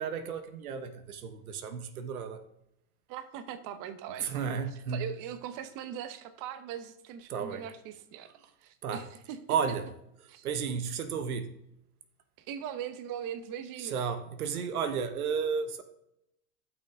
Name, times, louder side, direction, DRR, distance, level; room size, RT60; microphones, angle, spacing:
voice 1, 0.0-2.4 4.2-5.1 7.3-7.6 8.8-9.0 9.5-9.9 10.2-11.5 13.8-15.8, right 6 dB, 85° right, 10 dB, 1.0 m, -33 dB
voice 2, 3.1-4.3 4.9-8.3 8.6-9.4 10.3-10.5 12.4-14.0, right 9 dB, 50° right, 11 dB, 1.0 m, -40 dB
12.0 x 6.1 x 3.6 m, 0.80 s
hypercardioid pair, 100°, 42 cm